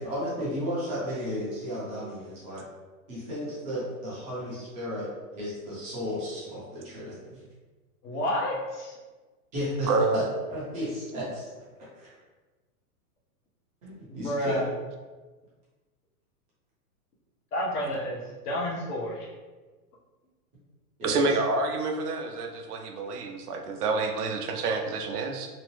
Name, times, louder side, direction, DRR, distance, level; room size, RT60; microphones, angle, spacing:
voice 1, 0.0-2.6 3.1-7.4 9.5-10.2 10.5-11.4 11.9-12.1 13.8-14.6 21.0-21.3, equal, 15° right, -8 dB, 0.6 m, -34 dB
voice 2, 8.0-9.0 14.1-14.7 17.5-19.3, equal, 80° left, -3 dB, 1.0 m, -30 dB
voice 3, 9.9-10.2 21.0-25.5, right 3 dB, 80° right, 4 dB, 0.6 m, -28 dB
2.8 x 2.0 x 3.0 m, 1.3 s
hypercardioid pair, 160°, 46 cm